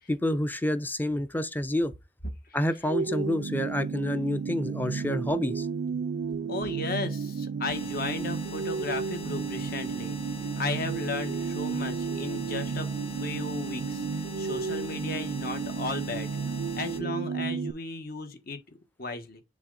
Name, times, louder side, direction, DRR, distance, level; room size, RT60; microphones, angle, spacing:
voice 1, 0.1-1.9 2.5-5.7, left 1 dB, 10° left, 0.6 m, -28 dB
sound 1, 2.9-17.7, right 5 dB, 75° right, 0.4 m, -32 dB
voice 2, 6.5-10.2 10.6-12.9 13.2-16.3 16.8-19.4, left 3 dB, 55° left, 1.4 m, -35 dB
sound 2, 7.7-17.0, left 2 dB, 35° left, 1.1 m, -43 dB
7.2 x 3.7 x 3.9 m
head